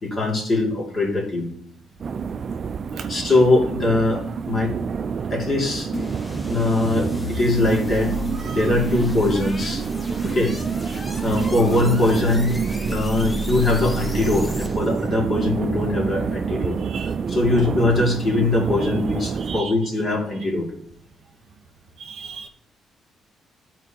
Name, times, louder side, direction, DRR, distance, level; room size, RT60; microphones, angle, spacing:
voice 1, 0.0-1.5 3.1-4.7 5.3-5.9 6.5-8.1 8.5-9.8 10.3-10.5 11.2-12.6 12.9-16.8 17.3-20.7, left 2 dB, 40° left, -2 dB, 2.5 m, -21 dB
sound 1, 2.0-19.6, right 6 dB, 50° right, 0.3 m, -28 dB
voice 2, 2.9-3.3 8.3-8.7 10.0-10.3 10.9-11.1 16.8-17.3 18.8-18.9 19.4-19.7 22.0-22.5, right 5 dB, 65° right, 6 dB, 0.9 m, -38 dB
sound 2, 5.9-15.0, equal, 20° left, 1.0 m, -33 dB
13.5 x 4.5 x 2.9 m, 0.72 s
cardioid pair, 90°, 0 cm